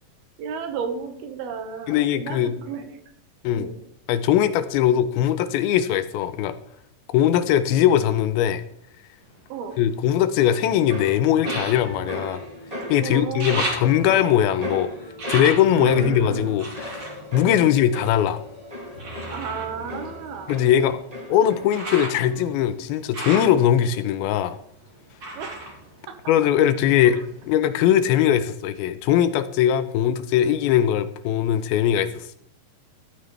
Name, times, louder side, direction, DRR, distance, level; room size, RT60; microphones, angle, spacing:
voice 1, 0.4-3.0 3.5-3.8 9.5-9.8 13.0-13.8 15.8-16.1 17.5-17.7 19.3-20.6 25.4-25.6 26.1-26.3 27.0-27.2, right 6 dB, 85° right, 6 dB, 3.3 m, -33 dB
voice 2, 1.9-2.5 3.4-3.7 4.1-6.6 7.1-8.6 9.8-12.4 12.9-14.9 15.3-17.1 17.3-18.4 20.5-21.0 21.3-24.6 26.3-32.3, left 10 dB, 90° left, 12 dB, 2.6 m, -20 dB
sound 1, 9.2-10.6 11.4-12.9 13.2-18.3 19.0-26.8 27.1-28.0 28.5-28.6, right 1 dB, 35° right, 3.6 m, -36 dB
sound 2, 10.4-22.0 22.3-22.8, equal, 15° right, 1.2 m, -35 dB
13.0 x 12.5 x 3.3 m, 0.73 s
omnidirectional pair, 4.3 m